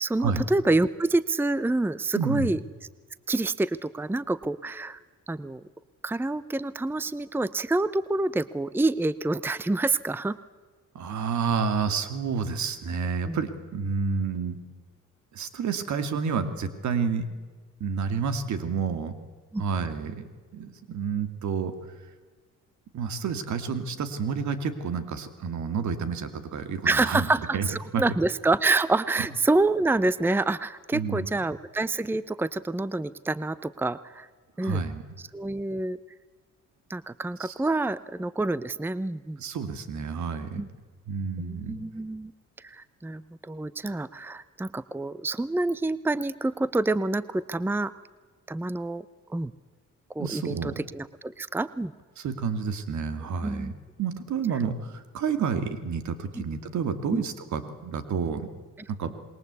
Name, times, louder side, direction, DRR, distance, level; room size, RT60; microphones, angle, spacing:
voice 1, 0.0-2.6 3.3-5.0 5.3-5.6 6.0-10.4 13.3-13.4 19.5-19.6 26.8-34.3 34.6-34.8 35.3-36.0 36.9-39.4 40.6-40.7 41.4-42.3 42.6-47.9 48.5-49.0 49.3-49.5 50.1-51.9 53.4-53.7 56.4-56.5 57.1-57.2, right 2 dB, 5° right, 17 dB, 0.7 m, -27 dB
voice 2, 2.1-2.5 10.9-14.6 15.3-17.3 17.8-19.1 19.6-20.3 20.5-21.7 22.9-27.7 27.9-28.0 30.9-31.3 34.6-35.0 37.4-37.5 39.4-40.6 41.1-41.8 50.2-50.8 52.2-53.7 54.0-58.5 58.9-59.1, right 6 dB, 70° right, 10 dB, 2.5 m, -29 dB
27.5 x 21.5 x 8.3 m, 1.4 s
cardioid pair, 90°, 30 cm